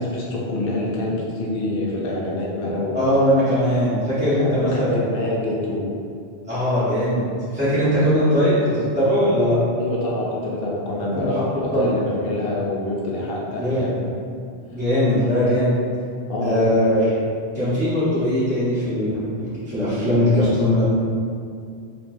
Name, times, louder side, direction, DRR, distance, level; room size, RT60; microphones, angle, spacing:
voice 1, 0.0-3.1 4.3-5.9 9.8-14.1 16.3-16.7, left 1 dB, 60° left, -3 dB, 0.9 m, -26 dB
voice 2, 2.9-5.1 6.5-7.3 7.5-9.6 11.1-11.3 11.7-11.9 13.5-13.9 14.7-15.8 16.4-17.1 17.5-19.1 19.4-20.8, equal, 10° right, -13 dB, 0.7 m, -20 dB
4.3 x 2.2 x 2.9 m, 2.4 s
omnidirectional pair, 1.1 m